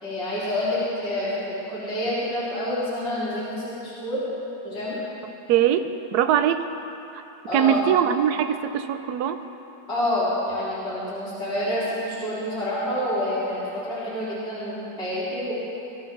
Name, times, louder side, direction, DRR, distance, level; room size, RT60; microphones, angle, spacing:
voice 1, 0.0-4.2 4.6-5.0 7.5-7.8 9.9-15.5, left 1 dB, 35° left, -13 dB, 4.3 m, -28 dB
voice 2, 5.5-6.7 7.5-9.4, right 9 dB, 70° right, 9 dB, 1.2 m, -22 dB
22.5 x 13.0 x 3.9 m, 2.9 s
omnidirectional pair, 1.9 m